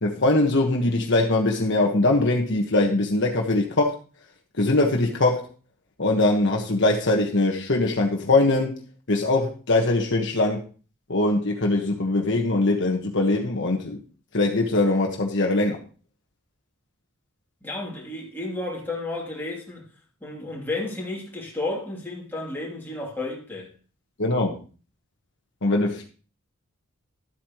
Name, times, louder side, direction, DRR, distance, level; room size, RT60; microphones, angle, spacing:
voice 1, 0.0-3.9 4.6-5.5 6.0-8.8 9.1-10.6 11.1-14.0 14.3-15.8 24.2-24.6 25.6-26.0, left 2 dB, 55° left, 1.3 m, -22 dB
voice 2, 17.6-19.9 20.2-23.7, left 2 dB, 10° left, 2.7 m, -32 dB
12.5 x 8.5 x 3.0 m
head